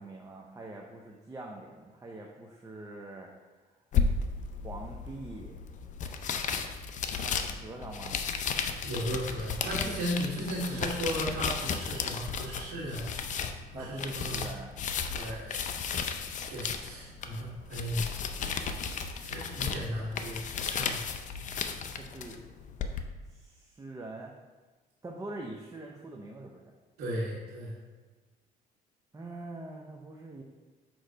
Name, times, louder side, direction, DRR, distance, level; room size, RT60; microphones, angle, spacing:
voice 1, 0.0-3.3 4.6-5.6 7.1-8.2 10.5-11.2 13.7-14.7 19.6-19.7 21.9-22.4 23.3-24.3 25.0-26.8 29.1-30.4, right 2 dB, 20° right, 0 dB, 0.6 m, -44 dB
sound 1, 3.9-23.0, left 6 dB, 45° left, 0.5 m, -34 dB
voice 2, 8.8-13.1 13.7-14.4 15.1-15.6 16.5-18.0 19.2-21.0 27.0-27.7, equal, 85° right, -10 dB, 2.0 m, -35 dB
6.5 x 3.1 x 5.1 m, 1.3 s
cardioid pair, 110°, 17 cm